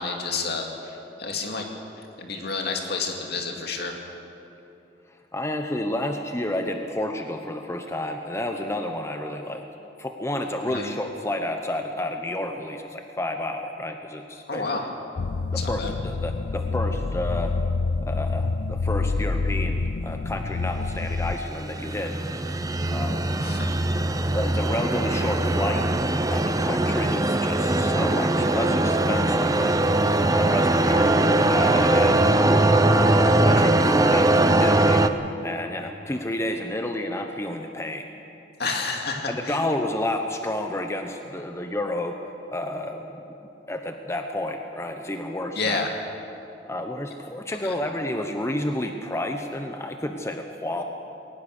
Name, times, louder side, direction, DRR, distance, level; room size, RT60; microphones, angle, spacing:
voice 1, 0.0-1.6 2.2-3.9 10.7-10.9 14.5-14.9 15.6-15.9 23.4-23.7 38.6-39.6 45.6-45.9 47.6-47.7, left 4 dB, 65° left, 2 dB, 2.4 m, -29 dB
voice 2, 5.3-9.6 10.0-14.7 15.5-17.6 18.0-22.1 22.9-23.3 24.3-25.8 26.3-29.8 30.1-32.2 32.8-35.0 35.4-38.1 39.3-42.2 42.5-43.2 43.7-45.9 46.7-50.8, left 1 dB, 15° left, 5 dB, 0.9 m, -30 dB
sound 1, 15.2-21.4, left 3 dB, 80° left, 0.5 m, -27 dB
sound 2, 21.0-35.1, right 2 dB, 20° right, 0.7 m, -21 dB
21.0 x 19.0 x 6.6 m, 2.9 s
head